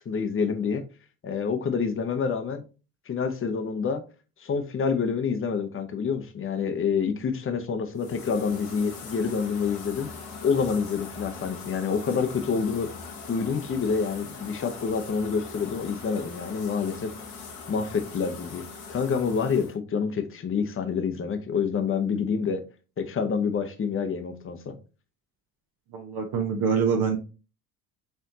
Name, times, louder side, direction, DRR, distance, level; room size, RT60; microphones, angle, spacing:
voice 1, 0.0-0.8 1.2-2.6 3.1-4.0 4.4-10.1 10.4-12.9 13.3-17.1 17.7-18.6 18.9-22.6 23.0-24.7, left 6 dB, 30° left, 0.9 m, -27 dB
sound 1, 8.0-19.7, left 4 dB, 80° left, 1.6 m, -41 dB
voice 2, 25.9-27.2, right 6 dB, 55° right, 1.2 m, -25 dB
4.4 x 3.6 x 2.7 m
hypercardioid pair, 70°, 44 cm